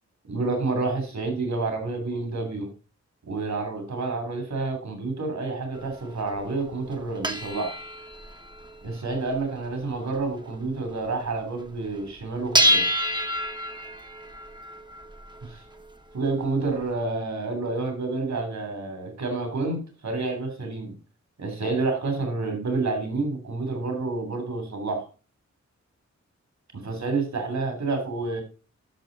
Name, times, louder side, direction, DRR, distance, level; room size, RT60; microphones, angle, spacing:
voice 1, 0.3-2.7 3.3-7.8 8.8-12.9 15.4-15.6 16.1-20.9 21.4-25.1 26.7-28.4, right 3 dB, 70° right, 5 dB, 2.9 m, -29 dB
sound 1, 5.7-11.3 11.6-11.7 11.9-16.8, equal, 15° right, 0.9 m, -29 dB
11.5 x 6.4 x 3.9 m, 0.33 s
wide cardioid pair, 130°, 29 cm